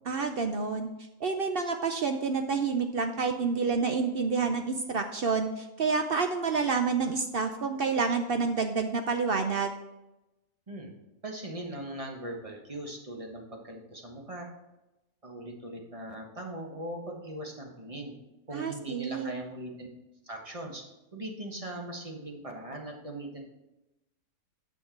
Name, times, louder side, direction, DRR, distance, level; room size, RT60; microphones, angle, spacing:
voice 1, 0.1-0.9 1.2-9.7 18.5-19.3, right 4 dB, 70° right, 6 dB, 0.5 m, -28 dB
voice 2, 11.2-14.5 15.2-18.1 18.5-19.9 20.2-20.8 21.1-23.4, right 1 dB, 25° right, 1 dB, 1.2 m, -40 dB
9.0 x 6.5 x 4.5 m, 0.98 s
omnidirectional pair, 1.6 m